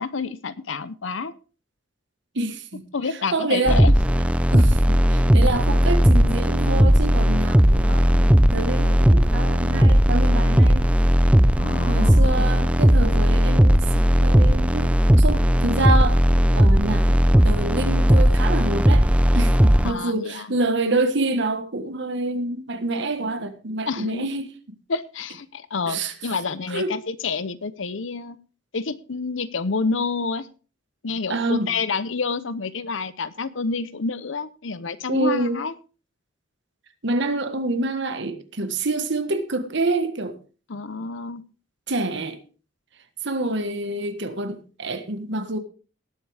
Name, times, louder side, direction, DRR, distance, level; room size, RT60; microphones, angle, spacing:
voice 1, 0.0-1.3 2.9-4.0 11.6-12.5 19.8-20.5 23.8-24.3 24.9-28.4 28.7-30.5 31.0-35.7 40.7-41.4, left 4 dB, 80° left, 0.8 m, -28 dB
voice 2, 2.3-2.9 3.3-3.8 4.5-10.9 11.8-16.2 16.5-19.1 19.3-24.5 25.9-26.1 26.7-26.9 31.3-31.7 35.1-35.6 37.0-40.4 41.9-42.4 43.2-45.6, right 2 dB, 65° right, 1.5 m, -27 dB
sound 1, 3.7-19.9, equal, 5° right, 0.4 m, -17 dB
18.5 x 7.9 x 3.5 m
head